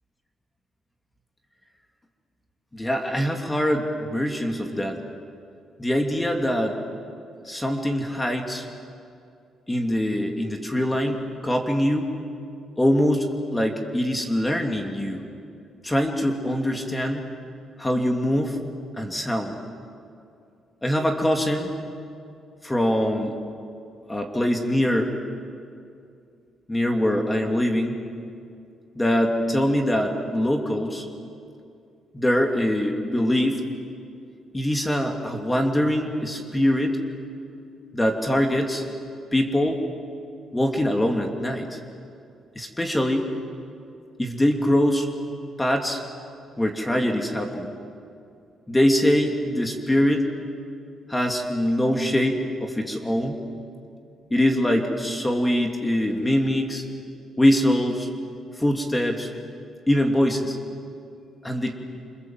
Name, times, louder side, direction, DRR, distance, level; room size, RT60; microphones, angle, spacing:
voice 1, 2.7-5.0 5.8-6.8 7.5-8.7 9.7-12.1 12.8-15.2 15.8-17.3 17.8-18.6 18.9-19.5 20.8-21.7 22.6-23.4 24.1-25.1 26.7-28.0 29.0-31.1 32.1-33.6 34.5-37.0 37.9-38.8 39.3-39.8 40.5-41.8 42.5-43.3 44.2-45.1 45.6-46.0 46.6-47.7 48.7-50.2 51.1-53.4 54.3-56.8 57.4-58.1 58.6-59.3 59.9-60.6 61.4-61.8, equal, 15° left, 3 dB, 2.8 m, -23 dB
27.5 x 26.5 x 7.7 m, 2.4 s
cardioid pair, 90°, 0 cm